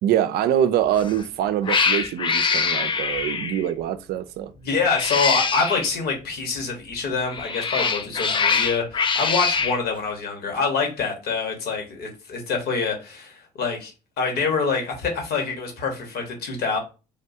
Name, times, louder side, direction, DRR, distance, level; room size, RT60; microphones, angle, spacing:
voice 1, 0.0-4.5, right 10 dB, 65° right, 0.4 m, -24 dB
Cat, 0.9-1.2 1.6-3.7 4.8-5.9 7.2-9.8, left 5 dB, 30° left, 0.4 m, -24 dB
voice 2, 4.6-16.8, left 4 dB, 65° left, 1.2 m, -26 dB
3.6 x 2.3 x 2.7 m
hypercardioid pair, 60°, 18 cm